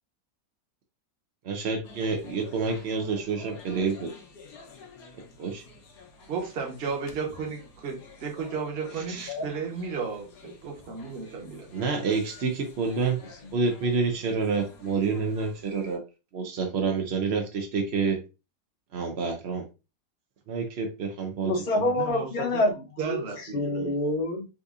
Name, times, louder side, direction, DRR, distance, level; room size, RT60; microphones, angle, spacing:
voice 1, 1.4-4.1 5.4-5.6 9.0-9.3 11.7-13.2 13.5-16.0 16.3-18.2 18.9-19.7 20.5-21.5, right 4 dB, 85° right, 3 dB, 0.5 m, -28 dB
sound 1, 1.8-16.0, left 4 dB, 70° left, 1.2 m, -50 dB
voice 2, 6.3-11.7 22.0-22.3 23.0-23.9, right 5 dB, 45° right, 1 dB, 1.0 m, -34 dB
voice 3, 21.4-24.5, left 1 dB, 45° left, 0 dB, 0.7 m, -27 dB
4.0 x 2.6 x 2.4 m, 0.29 s
omnidirectional pair, 1.9 m